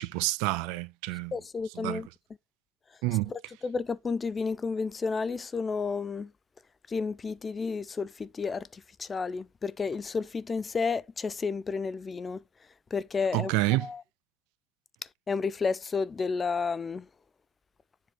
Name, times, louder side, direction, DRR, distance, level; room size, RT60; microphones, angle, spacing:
voice 1, 0.0-1.3 1.8-2.0 3.0-3.3 13.3-13.9, right 19 dB, 70° right, 0.8 m, -28 dB
voice 2, 1.3-2.1 3.3-6.3 6.9-12.4 12.9-13.5 13.8-14.0 15.3-17.1, left 5 dB, 25° left, 0.4 m, -31 dB
7.5 x 4.2 x 4.4 m
supercardioid pair, 110°, 0 cm